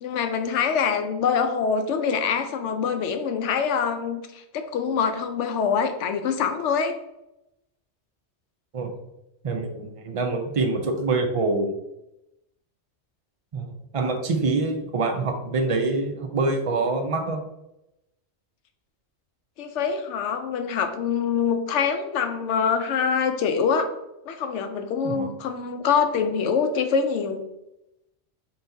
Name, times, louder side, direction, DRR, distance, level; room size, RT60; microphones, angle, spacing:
voice 1, 0.0-6.9 19.6-23.9 24.3-27.4, left 6 dB, 85° left, 7 dB, 0.9 m, -25 dB
voice 2, 9.4-11.7 13.5-17.4 25.0-25.3, right 3 dB, 45° right, 5 dB, 0.4 m, -25 dB
4.1 x 4.0 x 2.6 m, 0.89 s
omnidirectional pair, 1.2 m